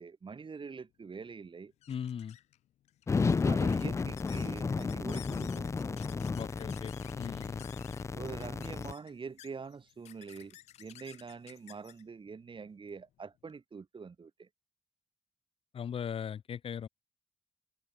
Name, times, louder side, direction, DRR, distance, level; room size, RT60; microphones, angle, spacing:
voice 1, 0.0-1.7 3.4-6.0 8.1-14.5, right 5 dB, 50° right, 6.4 m, -45 dB
sound 1, 1.0-13.6, left 13 dB, 85° left, 4.9 m, -56 dB
voice 2, 1.9-2.4 6.4-7.7 15.7-16.9, left 8 dB, 55° left, 0.7 m, -39 dB
sound 2, 3.1-8.9, left 4 dB, 25° left, 0.3 m, -32 dB
supercardioid pair, 50°, 11 cm